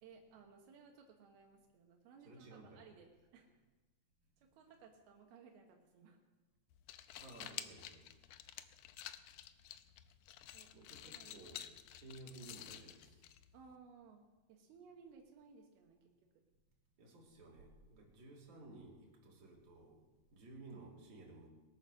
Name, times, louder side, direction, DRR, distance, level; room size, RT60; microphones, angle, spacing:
voice 1, 0.0-3.6 4.4-6.2 10.5-10.7 11.0-11.5 13.5-16.1, right 5 dB, 85° right, 1 dB, 3.2 m, -60 dB
voice 2, 2.2-2.9 7.2-8.0 10.7-11.6 11.9-13.1 17.0-20.0 20.3-21.5, right 2 dB, 50° right, -3 dB, 4.1 m, -55 dB
sound 1, 6.7-13.7, left 12 dB, 85° left, 1.8 m, -51 dB
21.0 x 9.0 x 6.3 m, 1.2 s
omnidirectional pair, 4.3 m